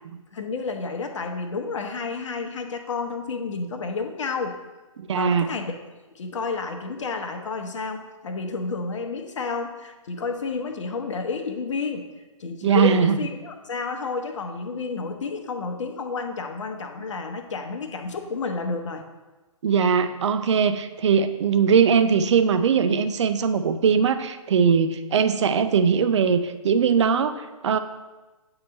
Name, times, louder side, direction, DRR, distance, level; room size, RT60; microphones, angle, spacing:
voice 1, 0.3-4.6 5.1-5.8 6.1-12.1 12.4-19.0, left 4 dB, 60° left, 5 dB, 0.9 m, -30 dB
voice 2, 5.0-5.5 12.6-13.1 19.6-27.8, right 6 dB, 55° right, 10 dB, 0.5 m, -20 dB
8.7 x 2.9 x 5.2 m, 1.2 s
figure-of-eight pair, 135°, 18 cm